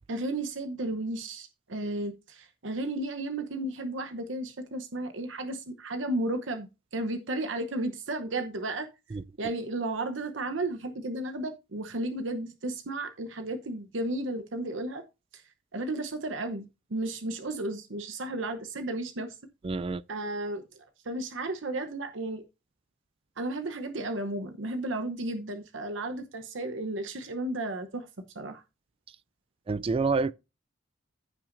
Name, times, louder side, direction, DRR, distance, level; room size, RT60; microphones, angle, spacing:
voice 1, 0.1-8.9 9.4-15.0 15.3-15.4 15.7-19.3 20.1-22.4 23.4-28.1 28.3-28.6, right 2 dB, 75° right, 0.9 m, -33 dB
voice 2, 19.6-20.0 29.7-30.3, right 4 dB, 30° right, 0.3 m, -27 dB
15.0 x 5.9 x 2.6 m
head